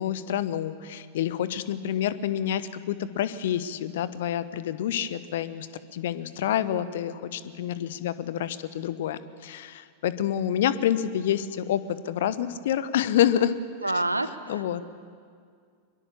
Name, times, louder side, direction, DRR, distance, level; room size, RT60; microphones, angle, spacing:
voice 1, 0.0-13.5 13.8-13.9 14.5-14.8, left 10 dB, 55° left, 15 dB, 1.0 m, -28 dB
voice 2, 13.8-14.8, right 2 dB, 85° right, 12 dB, 1.1 m, -28 dB
23.5 x 22.0 x 7.2 m, 2.2 s
figure-of-eight pair, 90°, 0 cm